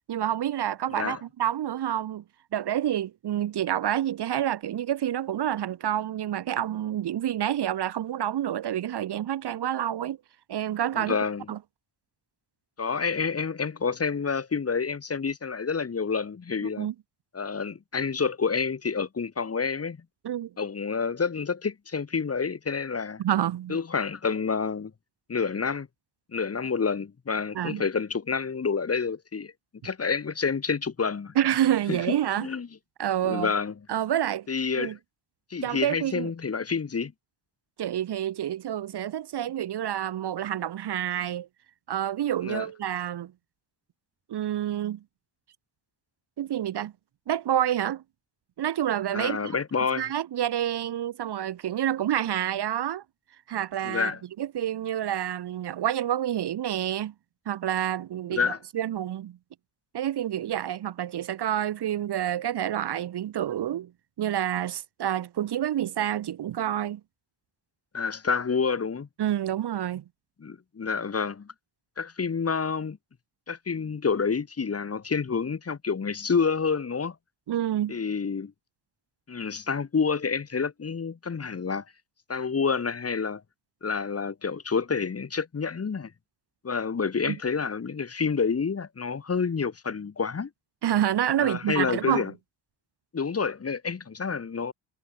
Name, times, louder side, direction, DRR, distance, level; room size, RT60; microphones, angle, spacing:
voice 1, 0.1-2.2 2.5-10.2 10.5-11.2 11.5-11.6 16.8-16.9 20.2-20.5 23.2-23.8 27.5-27.8 31.4-32.5 33.0-33.5 33.9-34.5 34.8-35.0 35.6-36.3 37.8-41.5 41.9-43.3 44.3-45.0 46.4-46.9 47.3-48.0 48.6-49.5 50.0-53.0 53.5-54.1 54.4-57.1 57.5-59.4 59.9-63.9 64.2-67.0 69.2-70.0 77.5-78.0 87.2-87.4 90.8-92.2, right 11 dB, 60° right, 0.7 m, -28 dB
voice 2, 0.9-1.2 10.9-11.5 12.8-16.9 17.3-20.0 20.6-23.2 23.7-24.9 25.3-25.9 26.3-29.5 29.8-31.4 31.9-32.0 32.4-32.7 33.2-33.7 34.5-35.0 35.5-37.1 42.4-42.7 49.1-50.1 53.8-54.2 58.3-58.6 67.9-69.1 70.4-71.5 72.0-73.0 73.5-77.2 77.9-78.5 79.3-81.8 82.3-83.4 83.8-86.1 86.6-90.5 91.4-92.3 93.1-94.7, left 5 dB, 30° left, 1.0 m, -28 dB
wide cardioid pair, 115°, 47 cm